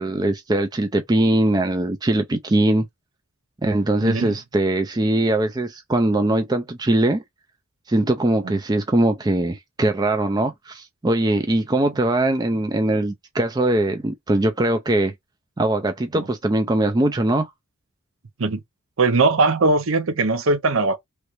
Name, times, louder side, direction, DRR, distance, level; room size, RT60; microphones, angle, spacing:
voice 1, 0.0-2.9 3.6-7.2 7.9-15.1 15.6-17.5, right 1 dB, 20° right, 0.4 m, -21 dB
voice 2, 4.0-4.3 8.4-8.6 16.1-16.3 18.4-18.6 19.0-21.0, right 3 dB, 65° right, 0.6 m, -20 dB
3.1 x 2.5 x 3.0 m
head